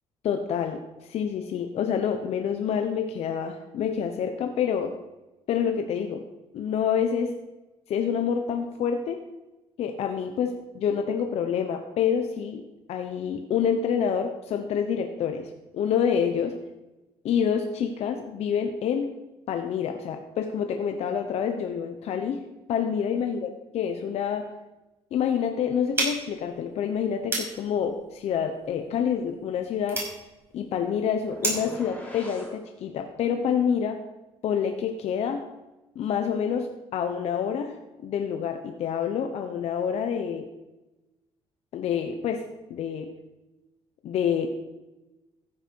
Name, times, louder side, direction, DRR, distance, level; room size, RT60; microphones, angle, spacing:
voice 1, 0.2-4.9 5.5-6.2 6.5-7.3 7.9-9.2 9.8-12.6 12.9-16.5 17.2-19.1 19.5-22.4 22.7-24.5 25.1-30.0 30.5-34.0 34.4-35.4 35.9-37.8 38.0-40.5 41.7-43.1 44.0-44.5, left 7 dB, 65° left, 5 dB, 1.0 m, -27 dB
sound 1, 25.9-31.8, right 2 dB, 20° right, 5.5 m, -34 dB
sound 2, 31.3-32.6, left 1 dB, 15° left, 4.6 m, -41 dB
15.0 x 8.9 x 4.7 m, 1.0 s
cardioid pair, 120°, 12 cm